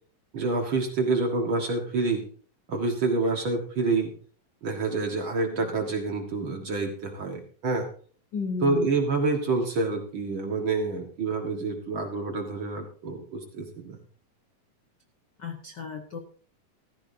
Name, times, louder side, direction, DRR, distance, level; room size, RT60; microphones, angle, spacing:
voice 1, 0.3-2.2 2.7-4.1 4.6-7.9 8.6-14.0, right 3 dB, 45° right, 2 dB, 2.0 m, -27 dB
voice 2, 8.3-8.9 15.4-16.2, left 5 dB, 60° left, 4 dB, 1.2 m, -33 dB
15.0 x 14.5 x 2.7 m, 0.43 s
omnidirectional pair, 3.7 m